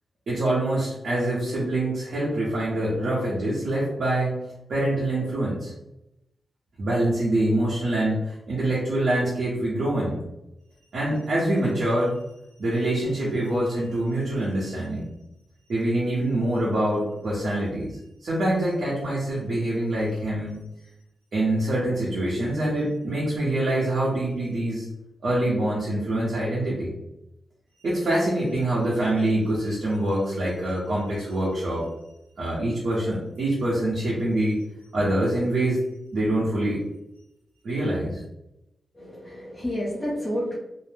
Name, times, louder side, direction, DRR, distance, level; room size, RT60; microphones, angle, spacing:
voice 1, 0.3-4.3 4.7-5.7 6.8-10.2 10.9-12.2 12.6-15.1 15.7-20.6 21.3-24.9 25.2-26.9 27.8-31.9 32.4-34.6 34.9-35.8 36.1-36.8 37.6-38.2, right 1 dB, 60° right, -8 dB, 0.8 m, -25 dB
voice 2, 38.9-40.6, equal, 5° left, -7 dB, 0.6 m, -30 dB
2.7 x 2.0 x 3.2 m, 0.90 s
wide cardioid pair, 160°, 0 cm